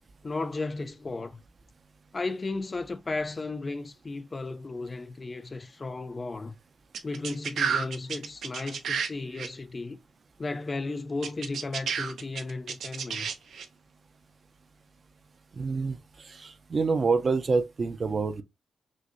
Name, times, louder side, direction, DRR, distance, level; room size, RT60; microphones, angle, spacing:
voice 1, 0.2-1.4 2.1-6.6 7.0-10.0 10.4-13.3, left 3 dB, 25° left, 0.3 m, -34 dB
sound 1, 6.9-9.1 9.4-9.5 11.2-13.7, right 6 dB, 85° right, 0.8 m, -31 dB
voice 2, 15.6-18.4, right 4 dB, 35° right, 0.5 m, -27 dB
6.2 x 2.6 x 2.5 m
wide cardioid pair, 175°, 0 cm